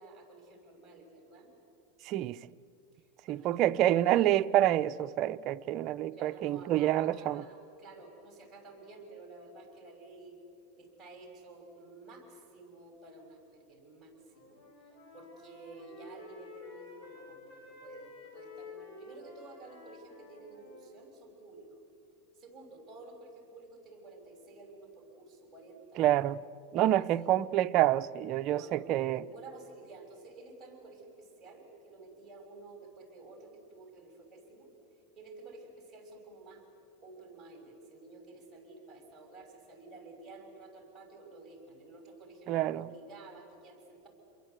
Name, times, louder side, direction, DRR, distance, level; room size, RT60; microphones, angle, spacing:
voice 1, 0.0-1.5 2.9-4.0 6.1-10.4 10.8-14.6 15.1-21.8 22.3-26.0 26.8-27.3 28.5-34.7 35.2-36.7 37.0-44.1, right 3 dB, 10° right, 6.4 m, -52 dB
voice 2, 2.1-2.4 3.3-7.4 26.0-26.4 26.7-29.2 42.5-42.9, right 13 dB, 40° right, 0.6 m, -27 dB
Wind instrument woodwind instrument, 14.2-20.9, left 3 dB, 45° left, 6.6 m, -51 dB
28.0 x 22.5 x 8.2 m
supercardioid pair, 140°, 0 cm